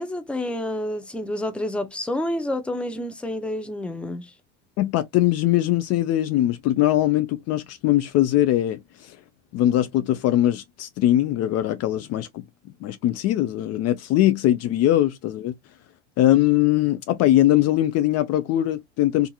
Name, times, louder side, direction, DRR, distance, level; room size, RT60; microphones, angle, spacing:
voice 1, 0.0-4.3, left 1 dB, 5° left, 0.6 m, -29 dB
voice 2, 4.8-9.1 9.5-12.4 12.8-15.5 16.2-19.3, left 14 dB, 45° left, 0.5 m, -21 dB
2.8 x 2.5 x 2.3 m
hypercardioid pair, 85°, 36 cm